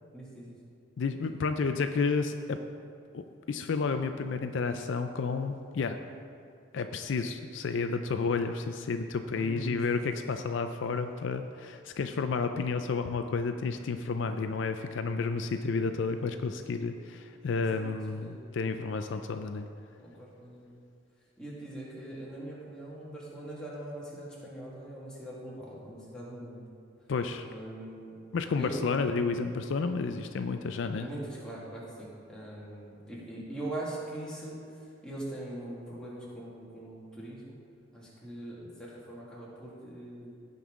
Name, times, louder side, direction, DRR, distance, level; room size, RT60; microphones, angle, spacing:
voice 1, 0.1-0.5 9.3-10.0 17.7-17.8 18.2-18.4 20.0-20.7 21.4-26.7 27.4-28.1 28.6-28.8 31.0-37.6 37.9-40.3, right 1 dB, 5° left, -7 dB, 1.9 m, -42 dB
voice 2, 1.0-2.6 3.1-3.2 3.5-6.0 6.7-19.7 27.1-27.5 28.3-31.1, left 4 dB, 65° left, 7 dB, 0.4 m, -31 dB
16.0 x 5.4 x 3.7 m, 2.4 s
head